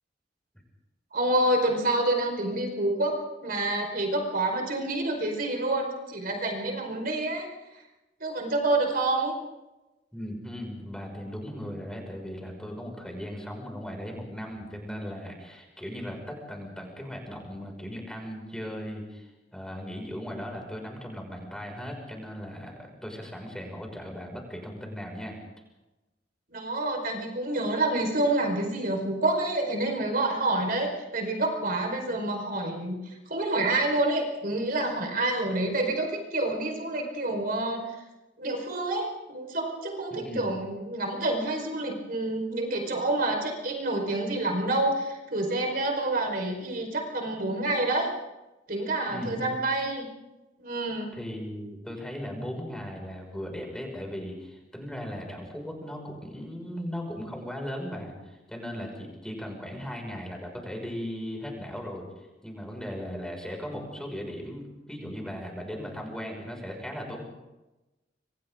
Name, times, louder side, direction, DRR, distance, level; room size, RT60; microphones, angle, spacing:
voice 1, 1.1-3.2 3.4-7.5 8.2-9.3 26.5-38.0 38.4-48.1 48.7-50.1 50.6-51.1, right 2 dB, 50° right, 2 dB, 4.9 m, -28 dB
voice 2, 10.1-25.4 40.1-40.5 49.1-49.6 51.1-67.2, equal, 5° left, 1 dB, 6.1 m, -37 dB
28.5 x 26.0 x 3.9 m, 1.0 s
head